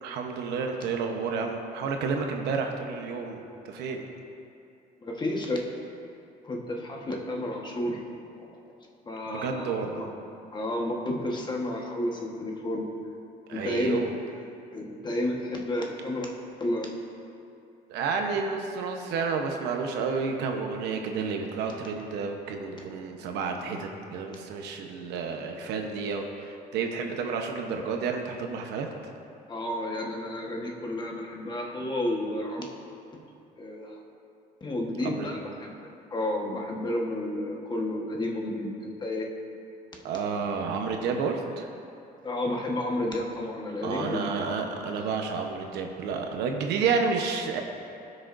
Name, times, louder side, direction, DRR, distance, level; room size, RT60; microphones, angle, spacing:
voice 1, 0.0-3.4 3.6-4.1 9.3-10.1 13.5-14.1 17.9-28.9 35.0-35.3 40.0-41.7 43.8-47.6, right 5 dB, 85° right, 3 dB, 0.9 m, -30 dB
voice 2, 5.0-5.6 6.4-8.0 8.4-8.6 9.1-10.1 10.5-12.9 13.5-14.0 14.7-16.3 16.6-16.9 29.5-32.6 33.6-34.0 34.6-35.7 36.1-39.3 42.2-44.3, left 1 dB, 25° left, 0 dB, 1.3 m, -31 dB
17.0 x 6.3 x 2.6 m, 2.7 s
cardioid pair, 110°, 17 cm